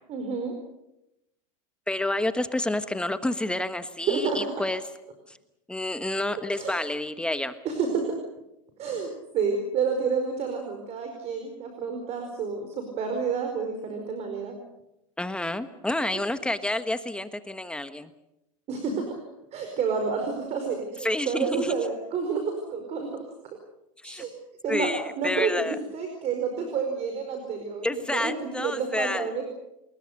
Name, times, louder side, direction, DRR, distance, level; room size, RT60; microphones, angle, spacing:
voice 1, 0.1-0.5 4.1-4.4 6.5-6.7 7.6-8.2 8.8-14.6 18.7-19.2 19.5-23.1 24.0-24.3 24.6-29.4, right 5 dB, 40° right, 5 dB, 4.8 m, -29 dB
voice 2, 1.9-4.8 5.3-5.4 5.7-7.5 15.2-18.1 21.0-21.7 24.0-24.3 24.7-25.8 27.8-29.3, left 1 dB, 5° left, 10 dB, 1.3 m, -29 dB
28.5 x 21.0 x 6.7 m, 0.88 s
supercardioid pair, 125°, 17 cm